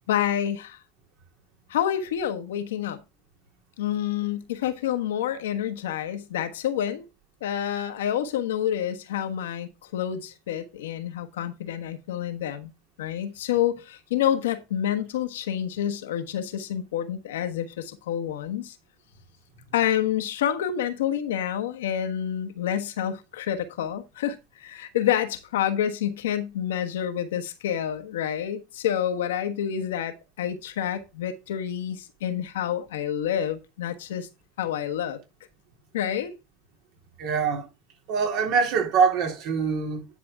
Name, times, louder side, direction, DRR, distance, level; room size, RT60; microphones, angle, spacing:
voice 1, 0.1-0.8 1.7-3.0 3.8-7.1 7.4-12.7 13.0-18.8 19.7-34.3 34.6-35.2 35.9-36.3, left 10 dB, 85° left, 1.3 m, -28 dB
voice 2, 37.2-37.7 38.1-40.1, right 6 dB, 60° right, 3.6 m, -24 dB
10.5 x 5.9 x 3.5 m
hypercardioid pair, 90°, 0 cm